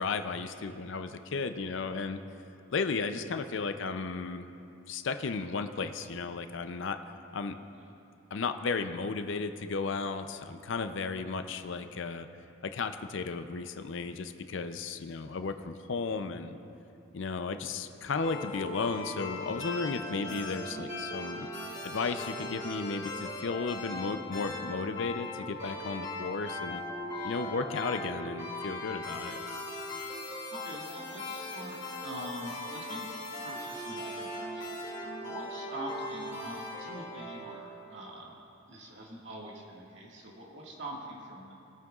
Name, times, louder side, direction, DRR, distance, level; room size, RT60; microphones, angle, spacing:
voice 1, 0.0-2.2 2.7-4.5 4.9-7.0 7.3-7.5 8.3-12.3 12.6-16.6 17.1-21.5 21.8-26.8 27.2-29.4, left 4 dB, 65° left, 9 dB, 0.5 m, -34 dB
sound 1, 18.2-38.1, left 2 dB, 35° left, 2.2 m, -39 dB
voice 2, 27.1-27.6 30.2-34.6 34.9-38.4 38.7-41.5, right 1 dB, 60° right, -3 dB, 1.8 m, -44 dB
20.5 x 9.2 x 2.4 m, 2.7 s
head